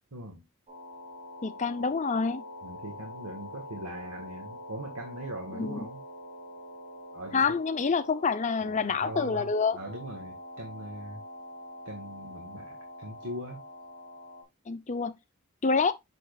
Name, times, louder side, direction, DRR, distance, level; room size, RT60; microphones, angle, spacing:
voice 1, 0.1-0.4 2.6-6.0 7.1-7.4 8.6-11.2 11.8-13.6, right 1 dB, 85° right, 1.6 m, -41 dB
sound 1, 0.7-14.4, left 1 dB, 25° right, 2.7 m, -45 dB
voice 2, 1.4-2.4 5.5-5.9 7.3-9.8 14.7-15.1 15.6-15.9, left 4 dB, 35° left, 0.6 m, -27 dB
7.0 x 6.1 x 2.3 m
head